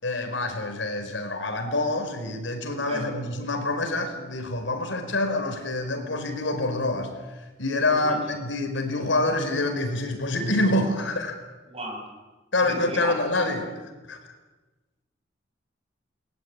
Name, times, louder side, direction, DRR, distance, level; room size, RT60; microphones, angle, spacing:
voice 1, 0.0-7.1 7.6-11.4 12.5-13.7 14.1-14.2, left 2 dB, 70° left, 6 dB, 5.1 m, -26 dB
voice 2, 7.9-8.2 11.7-12.0 12.6-13.2, right 1 dB, 30° right, 2 dB, 7.6 m, -35 dB
28.0 x 21.0 x 9.9 m, 1.2 s
head